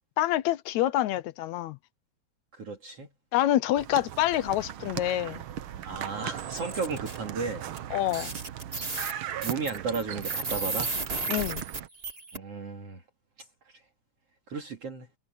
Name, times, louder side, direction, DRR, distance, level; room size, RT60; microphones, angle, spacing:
voice 1, 0.2-1.8 3.3-5.4 7.9-8.3 11.3-11.6, left 13 dB, 75° left, 1.9 m, -27 dB
voice 2, 2.5-3.1 5.8-7.6 9.4-10.9 12.3-13.0 14.5-15.1, right 4 dB, 50° right, 3.5 m, -34 dB
sound 1, 3.8-11.9, right 11 dB, 75° right, 1.2 m, -38 dB
sound 2, 6.4-7.2 7.8-7.9 8.1-12.4, right 3 dB, 20° right, 2.2 m, -34 dB
omnidirectional pair, 3.5 m